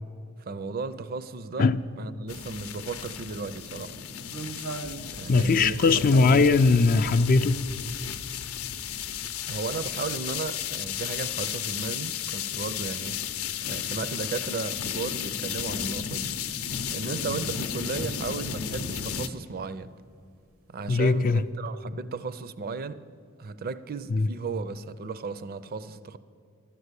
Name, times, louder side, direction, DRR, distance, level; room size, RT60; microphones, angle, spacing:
voice 1, 0.4-1.7 2.0-4.0 5.1-5.8 6.1-6.5 9.5-13.2 13.6-16.4 16.9-19.9 20.7-23.0 23.4-26.2, right 4 dB, 45° right, 0.5 m, -35 dB
sound 1, 2.3-19.3, left 8 dB, 80° left, 0.7 m, -34 dB
sound 2, 4.3-8.6 9.0-9.1 9.8-9.9 10.2-10.3 11.3-11.4 11.7-11.9 12.4-12.5 12.8-12.9 15.0-15.1 16.4-16.8 17.1-17.6 17.9-18.1 18.4-18.5 19.6-19.8 20.4-21.1 21.4-21.5, right 3 dB, 75° right, 0.8 m, -40 dB
voice 2, 5.3-7.7 20.9-21.4 24.1-24.3, left 4 dB, 40° left, 0.4 m, -20 dB
12.5 x 12.0 x 8.2 m
head